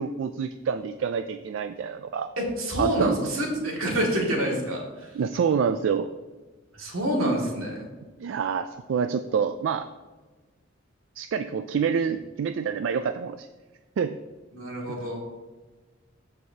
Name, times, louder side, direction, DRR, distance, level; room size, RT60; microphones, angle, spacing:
voice 1, 0.0-2.3 2.8-3.2 5.1-6.1 8.2-9.9 11.2-13.5 14.0-14.2, right 6 dB, 65° right, 10 dB, 0.3 m, -27 dB
voice 2, 2.4-5.2 6.8-7.9 14.5-15.2, right 1 dB, 90° right, -1 dB, 2.1 m, -27 dB
13.5 x 4.6 x 2.8 m, 1.2 s
head